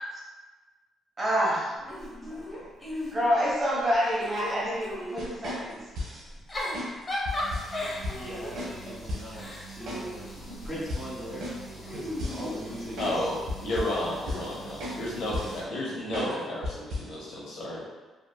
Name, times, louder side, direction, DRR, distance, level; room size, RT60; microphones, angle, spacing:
voice 1, 1.2-1.9 2.3-2.4 3.1-5.8, equal, 25° right, -7 dB, 1.0 m, -27 dB
Giggle / Chuckle chortle, 1.9-3.5 3.9-5.3 6.3-10.8 11.8-13.2, left 1 dB, 35° left, 0.7 m, -36 dB
sound 1, 5.2-6.3 6.7-6.9 7.2-7.8 8.0-8.2 8.5-8.7 9.1-9.3 9.9-10.0 10.4-10.5 10.9-13.2 13.5-14.0 14.3-14.5 14.8-15.0 15.3-15.6 16.1-16.3 16.6-17.1, left 2 dB, 75° right, 0.7 m, -35 dB
sound 2, 7.3-15.6, right 3 dB, 55° left, 1.4 m, -45 dB
voice 2, 8.1-10.3 10.6-13.3 16.1-16.4, equal, 15° left, -9 dB, 1.4 m, -40 dB
voice 3, 13.0-13.3 13.6-17.8, left 1 dB, 75° left, -6 dB, 0.8 m, -32 dB
2.7 x 2.6 x 2.2 m, 1.2 s
cardioid pair, 90°, 0 cm